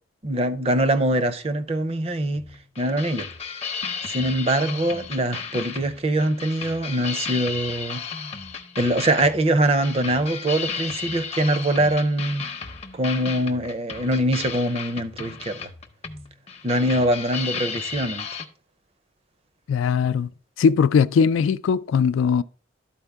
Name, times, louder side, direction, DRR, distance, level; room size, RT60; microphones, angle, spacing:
voice 1, 0.2-2.4 2.8-3.3 4.1-8.0 8.8-12.5 12.9-15.7 16.6-18.3, right 1 dB, 30° right, 0.5 m, -23 dB
sound 1, 2.3-18.5, left 6 dB, 35° left, 0.6 m, -34 dB
voice 2, 19.7-20.3 20.6-22.4, left 6 dB, 90° left, 0.3 m, -20 dB
12.0 x 4.4 x 3.4 m
head